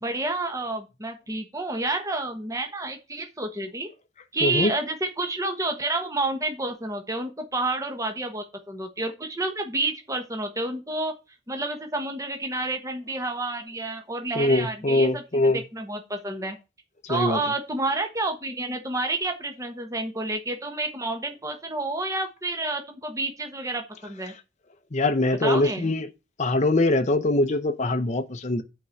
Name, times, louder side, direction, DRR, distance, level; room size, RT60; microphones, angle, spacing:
voice 1, 0.0-3.9 4.3-11.1 11.5-16.6 17.1-24.3 25.4-25.9, right 2 dB, 15° right, 1.2 m, -29 dB
voice 2, 4.4-4.7 14.4-15.6 17.0-17.4 24.9-26.1 26.4-28.6, left 2 dB, 40° left, 0.7 m, -22 dB
8.2 x 4.5 x 6.4 m
head